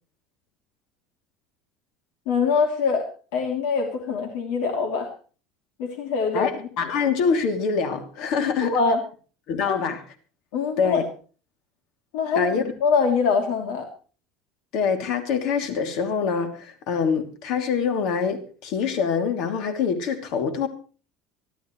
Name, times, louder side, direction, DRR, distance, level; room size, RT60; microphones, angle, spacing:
voice 1, 2.3-5.1 5.8-6.5 8.6-9.0 9.7-9.8 10.5-11.0 12.1-13.9, left 5 dB, 75° left, 3.0 m, -24 dB
voice 2, 6.3-8.8 9.5-10.0 10.8-11.0 12.4-12.6 14.7-20.7, left 6 dB, 55° left, 2.8 m, -25 dB
25.5 x 13.0 x 3.2 m
cardioid pair, 165°, 0 cm